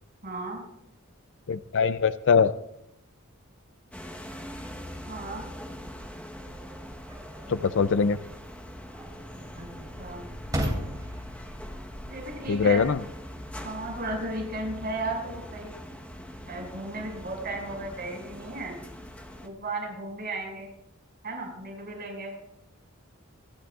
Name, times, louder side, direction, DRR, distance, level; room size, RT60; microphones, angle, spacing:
voice 1, 0.2-0.6 5.1-5.4 9.6-9.7 10.0-10.3 12.1-12.8 13.6-15.7 16.5-18.7 19.4-20.7 21.2-22.3, right 2 dB, 45° right, -1 dB, 6.1 m, -35 dB
voice 2, 1.5-2.5 7.5-8.2 12.5-13.0, left 5 dB, 60° left, 12 dB, 0.4 m, -22 dB
sound 1, 3.9-19.5, equal, 5° left, 1.1 m, -42 dB
sound 2, 4.6-15.4, equal, 15° right, 3.9 m, -40 dB
26.0 x 13.0 x 2.5 m, 0.80 s
head